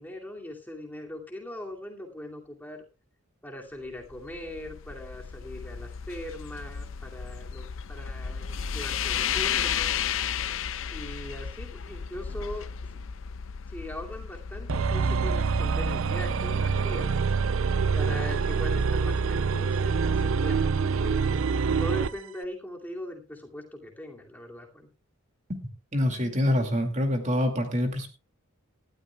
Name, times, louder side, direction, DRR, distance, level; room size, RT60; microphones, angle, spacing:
voice 1, 0.0-2.8 3.4-9.9 10.9-12.7 12.9-13.0 13.7-17.1 17.9-21.3 21.8-24.9, left 1 dB, 10° left, 0 dB, 2.5 m, -40 dB
sound 1, 3.9-18.0, left 8 dB, 65° left, 0.6 m, -34 dB
sound 2, 14.7-22.2, right 5 dB, 70° right, 0.5 m, -26 dB
voice 2, 25.9-28.1, left 1 dB, 35° right, 4 dB, 2.4 m, -26 dB
19.0 x 13.0 x 2.3 m, 0.30 s
head